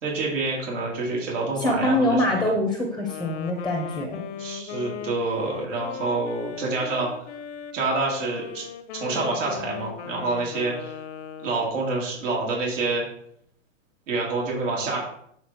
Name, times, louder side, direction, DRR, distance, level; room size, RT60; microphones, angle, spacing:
voice 1, 0.0-2.5 4.4-7.1 7.7-8.6 8.9-10.9 11.4-13.0 14.1-15.0, right 3 dB, 85° right, -3 dB, 3.2 m, -27 dB
voice 2, 1.6-4.2, left 1 dB, ahead, 1 dB, 0.7 m, -24 dB
Wind instrument woodwind instrument, 2.9-11.9, left 9 dB, 65° left, 0.9 m, -38 dB
8.9 x 4.0 x 4.4 m, 0.69 s
supercardioid pair, 150°, 37 cm